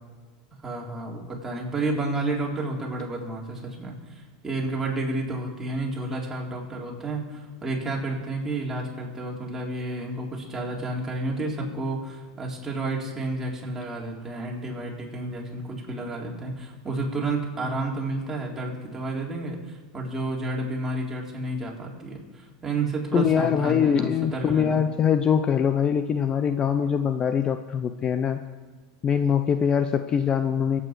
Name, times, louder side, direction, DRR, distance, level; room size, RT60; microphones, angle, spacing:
voice 1, 0.6-24.8, right 2 dB, 15° right, -3 dB, 3.9 m, -31 dB
voice 2, 23.1-28.4 29.0-30.8, left 7 dB, 30° left, 9 dB, 0.7 m, -23 dB
23.0 x 8.6 x 4.8 m, 1.3 s
hypercardioid pair, 100°, 3 cm